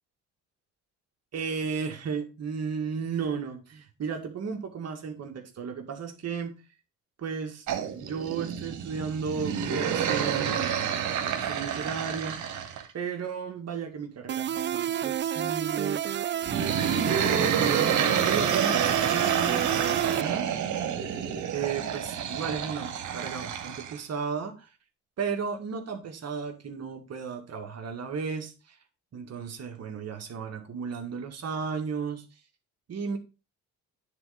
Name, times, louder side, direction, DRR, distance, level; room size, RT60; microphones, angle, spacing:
voice 1, 1.3-6.6 7.2-10.8 11.2-12.5 12.9-16.0 16.6-20.5 21.5-24.7 25.2-28.8 29.1-32.2 32.9-33.2, right 6 dB, 55° right, 3 dB, 2.0 m, -34 dB
sound 1, 7.7-12.9 16.4-24.0, right 8 dB, 75° right, 1.9 m, -28 dB
sound 2, 14.3-20.2, right 10 dB, 40° right, 0.4 m, -30 dB
9.7 x 4.3 x 5.1 m, 0.30 s
cardioid pair, 90°, 30 cm